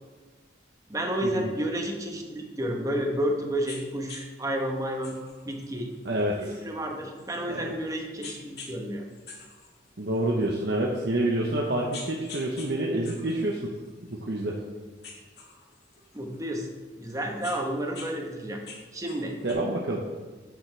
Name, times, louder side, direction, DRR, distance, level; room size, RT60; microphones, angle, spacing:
voice 1, 0.9-5.1 5.4-5.9 6.4-9.0 16.1-16.7 17.0-18.6 18.9-19.4, right 1 dB, 20° right, 1 dB, 1.1 m, -31 dB
sound 1, 3.6-3.8 4.1-4.2 5.0-7.7 8.2-8.8 9.1-10.5 11.0-11.1 11.6-12.7 13.0-14.6 15.0-16.4 17.0-18.1 18.4-19.5, left 4 dB, 65° left, 1.8 m, -45 dB
voice 2, 6.0-6.6 7.5-7.7 10.0-13.7 14.1-14.6 19.4-20.0, right 1 dB, 70° right, -2 dB, 0.9 m, -28 dB
10.5 x 7.1 x 3.3 m, 1.4 s
head